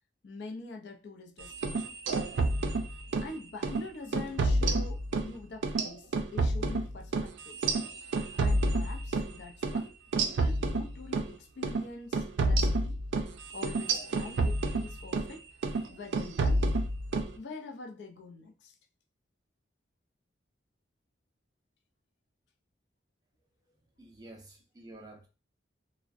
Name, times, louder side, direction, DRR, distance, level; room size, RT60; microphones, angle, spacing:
voice 1, 0.2-1.9 3.2-7.7 8.3-13.0 13.5-15.5 15.9-16.7 17.4-18.7, left 3 dB, 70° left, 0.4 m, -45 dB
sound 1, 1.5-3.3 3.6-3.8 4.1-5.3 5.6-9.3 9.6-9.8 10.1-11.3 11.6-11.8 12.1-15.3 15.6-15.9 16.1-17.3, right 2 dB, 85° right, 0.4 m, -29 dB
voice 2, 24.0-25.3, right 2 dB, 20° right, 0.4 m, -50 dB
2.5 x 2.1 x 2.4 m
head